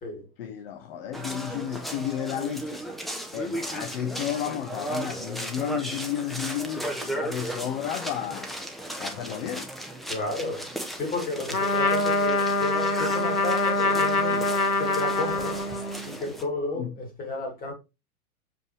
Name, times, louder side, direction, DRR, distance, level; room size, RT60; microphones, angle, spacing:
voice 1, 0.4-2.8 3.3-8.5 9.0-9.7 14.3-14.5 16.8-16.9, left 10 dB, 40° left, 1.0 m, -32 dB
sound 1, 1.1-16.4, right 1 dB, ahead, 0.7 m, -36 dB
voice 2, 10.1-10.7 10.9-14.4 14.8-15.7 16.0-17.7, left 2 dB, 20° left, 3.0 m, -32 dB
Trumpet, 11.5-16.1, left 2 dB, 90° left, 1.1 m, -24 dB
6.9 x 5.3 x 3.3 m
figure-of-eight pair, 105°, 44 cm